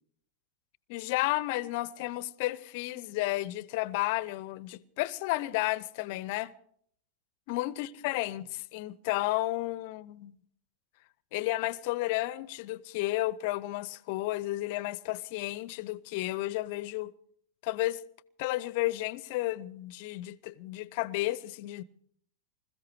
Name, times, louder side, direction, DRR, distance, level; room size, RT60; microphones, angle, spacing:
voice 1, 0.9-6.5 7.5-10.4 11.3-17.1 17.6-18.0 18.4-21.8, left 18 dB, 45° left, 0.6 m, -32 dB
21.0 x 14.0 x 4.7 m
figure-of-eight pair, 90°, 0 cm